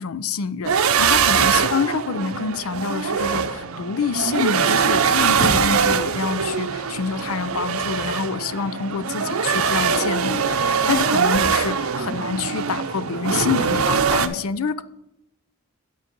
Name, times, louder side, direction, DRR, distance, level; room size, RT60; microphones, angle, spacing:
voice 1, 0.0-14.8, left 5 dB, 85° left, 15 dB, 0.5 m, -27 dB
sound 1, 0.6-14.3, right 6 dB, 85° right, 0.6 m, -22 dB
sound 2, 4.6-10.6, equal, 10° left, 2.7 m, -38 dB
8.9 x 4.0 x 6.7 m, 0.87 s
head